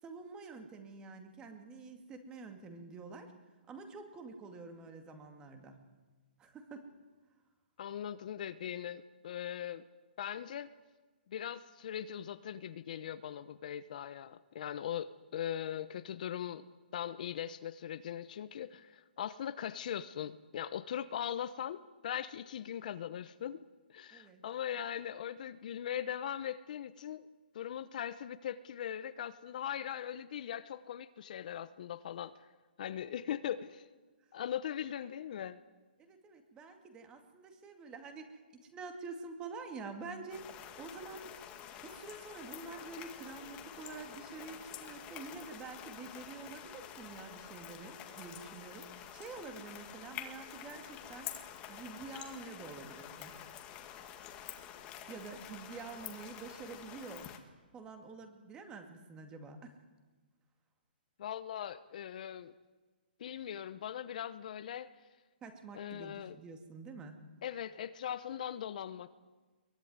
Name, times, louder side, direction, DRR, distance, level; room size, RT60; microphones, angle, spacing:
voice 1, 0.0-3.3 3.7-5.8 6.4-6.9 24.1-24.4 36.0-51.3 51.7-53.3 55.1-57.3 57.7-59.7 65.4-67.2, right 4 dB, 15° right, 6 dB, 2.3 m, -48 dB
voice 2, 7.8-9.8 10.2-10.7 11.3-16.7 16.9-27.3 27.5-32.3 32.8-33.9 34.3-35.6 61.2-62.5 63.2-64.9 65.7-66.4 67.4-69.2, left 10 dB, 50° left, 13 dB, 0.9 m, -40 dB
sound 1, 40.3-57.4, left 10 dB, 20° left, 1.9 m, -48 dB
22.5 x 20.5 x 9.6 m, 1.3 s
hypercardioid pair, 160°, 6 cm